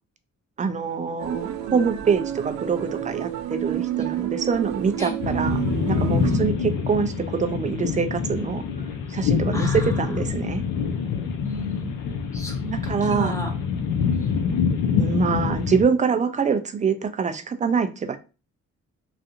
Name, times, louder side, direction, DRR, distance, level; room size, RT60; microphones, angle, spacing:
voice 1, 0.6-8.6 9.1-10.6 12.7-13.4 14.8-18.2, right 6 dB, 25° right, 9 dB, 0.4 m, -25 dB
sound 1, 1.2-6.4, right 13 dB, 85° right, 0.5 m, -29 dB
sound 2, 5.2-15.8, left 6 dB, 80° left, 0.6 m, -25 dB
voice 2, 9.5-10.0 11.4-11.9 12.3-13.5 13.8-14.4, equal, 10° left, 1 dB, 0.8 m, -34 dB
2.7 x 2.4 x 2.4 m, 0.31 s
cardioid pair, 90°, 30 cm